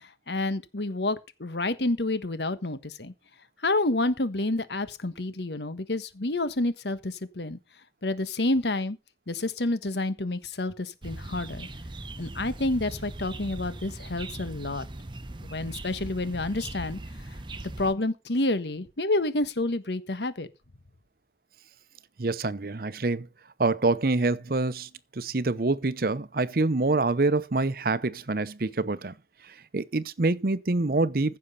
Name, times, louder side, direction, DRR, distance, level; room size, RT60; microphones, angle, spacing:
voice 1, 0.0-3.1 3.6-7.6 8.0-9.0 9.3-11.7 12.2-14.9 15.4-17.0 17.8-20.5, left 2 dB, 75° left, 1.4 m, -29 dB
sound 1, 11.0-17.9, right 2 dB, 25° right, 0.9 m, -40 dB
voice 2, 22.2-23.3 23.6-29.1 29.7-31.4, right 3 dB, 55° right, 0.8 m, -26 dB
15.5 x 6.4 x 5.5 m
head